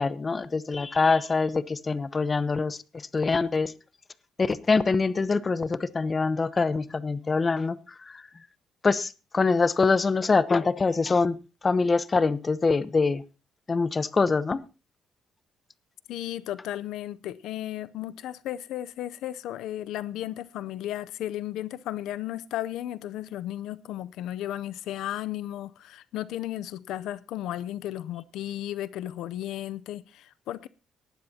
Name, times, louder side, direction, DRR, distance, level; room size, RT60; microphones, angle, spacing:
voice 1, 0.0-2.8 3.1-3.7 4.4-7.8 8.8-11.4 11.6-13.2 13.7-14.6, left 4 dB, 30° left, 15 dB, 0.9 m, -24 dB
voice 2, 16.1-30.7, left 13 dB, 85° left, 15 dB, 0.6 m, -34 dB
18.5 x 12.0 x 2.8 m, 0.32 s
cardioid pair, 90°, 0 cm